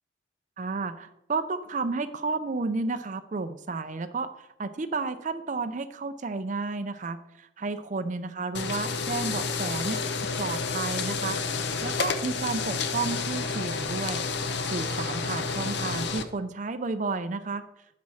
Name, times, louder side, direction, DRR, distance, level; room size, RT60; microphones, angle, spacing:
voice 1, 0.6-4.3 4.6-10.0 10.4-11.4 11.8-14.2 14.7-17.6, right 3 dB, 40° right, 10 dB, 0.5 m, -32 dB
sound 1, 8.5-16.2, left 4 dB, 55° left, 0.6 m, -30 dB
8.3 x 4.2 x 6.3 m, 0.87 s
head